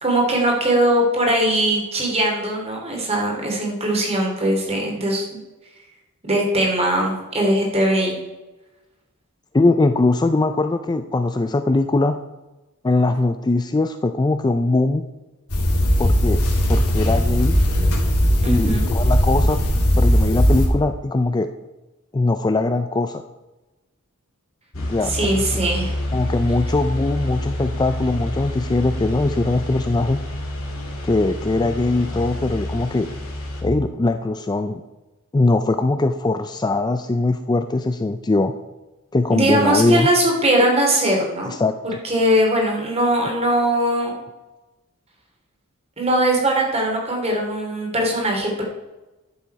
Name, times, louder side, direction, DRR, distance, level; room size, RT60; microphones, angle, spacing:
voice 1, 0.0-5.2 6.2-8.1 18.4-18.9 25.1-25.9 39.3-41.5 42.0-44.1 46.0-48.6, right 1 dB, 30° right, 0 dB, 2.8 m, -20 dB
voice 2, 9.5-12.2 12.8-15.1 16.0-16.4 16.7-17.6 18.5-19.6 20.0-21.5 22.1-23.2 24.8-25.6 26.1-30.2 31.0-33.1 33.6-34.8 35.3-38.5 39.1-40.1 41.5-42.0, left 2 dB, 20° left, 8 dB, 0.4 m, -21 dB
sound 1, 15.5-20.7, equal, 90° left, 2.6 m, -18 dB
sound 2, 24.7-33.6, left 1 dB, 65° left, 2.6 m, -28 dB
11.5 x 7.0 x 4.7 m, 1.1 s
head